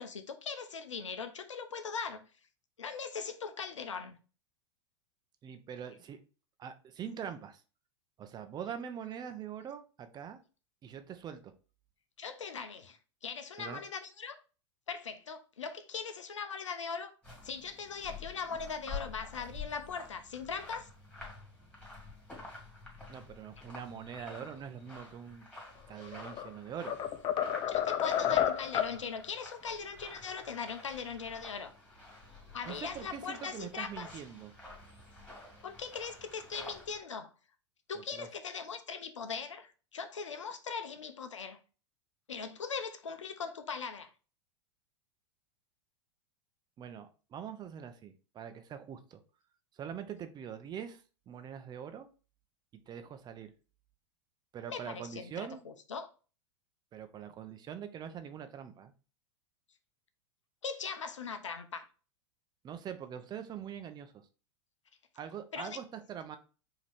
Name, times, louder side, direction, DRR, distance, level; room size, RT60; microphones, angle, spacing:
voice 1, 0.0-2.3 2.8-4.2 12.2-14.4 14.9-17.1 17.4-20.9 27.7-31.7 32.5-34.1 35.6-37.3 37.9-41.6 42.3-44.1 54.7-56.1 60.6-61.9 65.5-65.8, left 5 dB, 90° left, 0.7 m, -40 dB
voice 2, 5.4-6.2 6.6-7.6 8.2-10.4 10.8-11.5 13.6-13.8 23.1-25.5 25.9-27.0 28.2-28.5 32.7-34.5 37.9-38.3 46.8-49.2 49.7-52.1 52.9-53.5 54.5-55.7 56.9-58.9 62.6-64.1 65.1-66.4, right 8 dB, 30° right, 0.6 m, -43 dB
sound 1, 17.2-37.0, left 3 dB, 5° left, 2.2 m, -49 dB
sound 2, 26.0-26.5 26.9-29.0, left 10 dB, 35° left, 0.6 m, -30 dB
5.1 x 2.9 x 3.5 m
hypercardioid pair, 105°, 15 cm